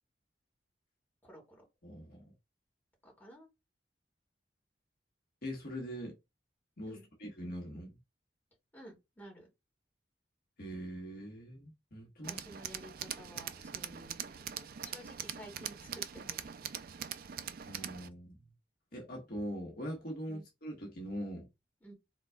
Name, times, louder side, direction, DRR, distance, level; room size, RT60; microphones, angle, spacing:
voice 1, 1.2-1.6 3.0-3.5 6.9-7.1 8.7-9.5 12.3-16.7 20.3-20.4 21.8-21.9, equal, 10° left, 2.4 m, -53 dB
voice 2, 1.8-2.3 5.4-6.2 6.8-8.0 10.6-12.4 17.7-18.4 18.9-21.5, equal, 60° left, 1.4 m, -42 dB
Tools, 12.2-18.1, right 9 dB, 55° right, 0.4 m, -42 dB
4.0 x 4.0 x 2.3 m
head